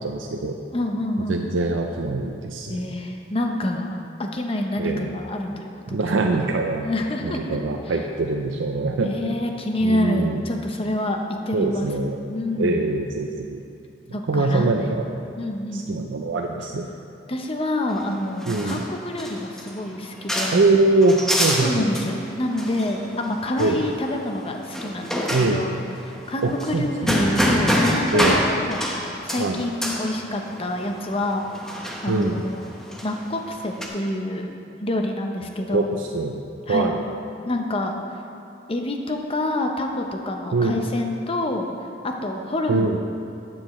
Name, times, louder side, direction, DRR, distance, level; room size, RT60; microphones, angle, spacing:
voice 1, 0.0-0.5 1.3-2.8 4.8-5.1 5.9-6.9 7.2-9.3 9.8-10.4 11.5-12.2 12.6-13.6 14.3-15.1 15.7-16.9 18.5-18.8 20.5-21.9 23.6-23.9 25.3-25.6 26.4-27.2 28.1-28.4 29.4-29.6 32.1-32.4 35.7-36.4 36.7-37.0 40.5-40.8 42.7-43.0, right 2 dB, 90° right, 2 dB, 0.5 m, -23 dB
voice 2, 0.7-1.4 2.7-6.3 6.8-7.4 7.9-8.0 9.0-11.2 11.5-11.9 12.3-12.8 14.1-15.0 15.4-15.9 17.3-20.6 21.6-25.8 26.3-28.9 29.2-31.4 32.0-32.7 33.0-34.5 34.8-35.9 36.7-36.9 37.4-38.0 38.7-41.7 42.0-42.9, left 1 dB, 30° left, 3 dB, 0.8 m, -27 dB
sound 1, 17.9-33.9, equal, 5° left, 0.9 m, -27 dB
12.5 x 8.8 x 3.1 m, 2.6 s
head